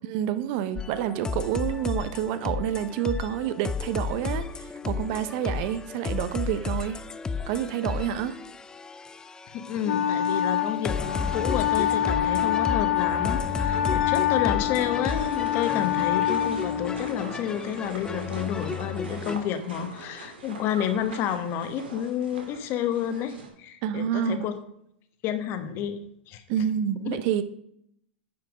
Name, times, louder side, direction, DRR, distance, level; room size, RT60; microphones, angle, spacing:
voice 1, 0.1-7.0 7.5-8.4 23.8-24.5 26.5-27.4, right 10 dB, 50° right, 12 dB, 0.6 m, -28 dB
sound 1, 0.8-19.4, left 5 dB, 15° left, 0.4 m, -33 dB
voice 2, 9.5-24.5 25.2-26.0 26.3-26.4 27.1-27.2, left 9 dB, 45° left, 9 dB, 1.1 m, -30 dB
Wind instrument woodwind instrument, 9.8-17.4, left 10 dB, 85° left, 0.4 m, -26 dB
sound 2, 15.0-23.5, right 3 dB, 90° right, 1.9 m, -43 dB
9.4 x 4.6 x 4.9 m, 0.72 s
hypercardioid pair, 120°, 6 cm